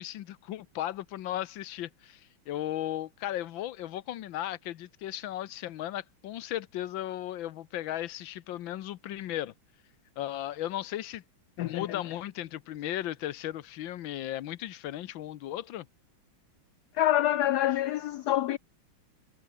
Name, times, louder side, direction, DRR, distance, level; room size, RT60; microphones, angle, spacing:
voice 1, 0.0-9.5 10.2-11.2 11.6-15.9, left 13 dB, 70° left, 1.5 m, -36 dB
voice 2, 11.6-12.0 16.9-18.6, left 13 dB, 85° left, 0.8 m, -26 dB
omnidirectional pair, 2.3 m